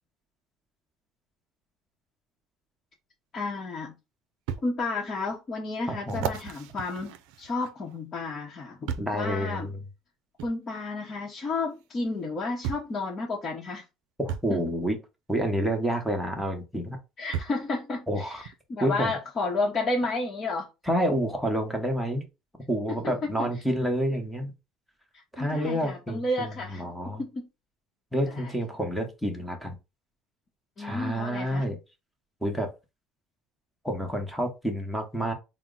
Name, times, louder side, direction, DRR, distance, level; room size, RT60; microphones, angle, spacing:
voice 1, 3.3-3.9 4.6-9.7 10.4-13.8 14.5-14.6 17.2-20.7 23.2-23.5 25.1-27.5 28.2-28.5 30.8-31.7, left 3 dB, 30° left, 0.9 m, -32 dB
sound 1, 3.4-3.5 4.5-4.7 5.3-5.4 6.1-8.0 8.9-9.2 10.4-10.5 11.8-11.9 12.6-13.0 14.3-14.5 16.2-16.3 17.3-17.7 18.4-18.6, right 8 dB, 85° right, 0.4 m, -34 dB
voice 2, 5.9-6.3 9.0-9.7 14.2-15.0 15.3-17.0 18.1-18.4 18.8-19.1 20.9-22.2 22.7-24.5 25.3-27.2 28.1-29.8 30.8-31.8 32.4-32.7 33.8-35.3, equal, ahead, 0.9 m, -29 dB
4.2 x 2.0 x 3.8 m
cardioid pair, 125°, 0 cm